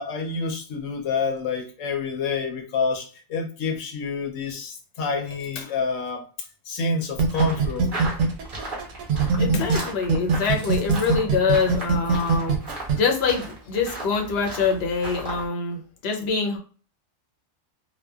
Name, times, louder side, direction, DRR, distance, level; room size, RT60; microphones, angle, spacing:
voice 1, 0.0-6.2 6.7-7.9 9.5-9.7, left 4 dB, 85° left, 1.0 m, -28 dB
sound 1, 7.2-9.8 10.1-13.0, right 5 dB, 80° right, 0.9 m, -21 dB
sound 2, 7.3-15.5, right 1 dB, 45° right, 1.0 m, -36 dB
voice 2, 9.4-12.6 13.0-16.6, left 5 dB, 60° left, 0.9 m, -25 dB
2.8 x 2.2 x 2.3 m
omnidirectional pair, 1.3 m